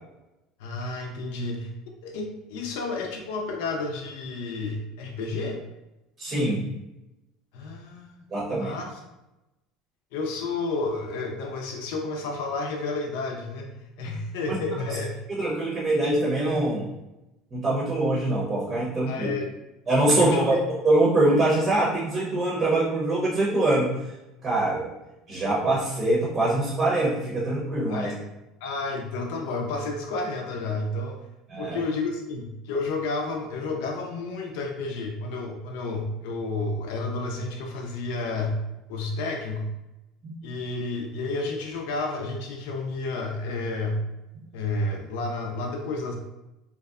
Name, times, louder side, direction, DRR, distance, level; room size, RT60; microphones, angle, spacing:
voice 1, 0.6-1.7 2.0-5.6 7.5-8.2 8.5-9.0 10.1-13.7 14.0-15.2 19.1-19.5 20.1-20.6 27.9-28.2 28.6-31.2 31.6-38.6 38.9-39.7 40.4-44.0 44.5-46.2, left 3 dB, 80° left, 2 dB, 0.5 m, -31 dB
voice 2, 6.2-6.6 8.3-8.7 15.3-16.9 17.5-19.3 19.9-20.6 20.8-23.9 24.4-24.9 25.3-28.1 31.5-31.8 40.2-40.3, right 2 dB, 35° right, -5 dB, 0.7 m, -23 dB
2.6 x 2.1 x 2.3 m, 0.96 s
supercardioid pair, 120°, 0 cm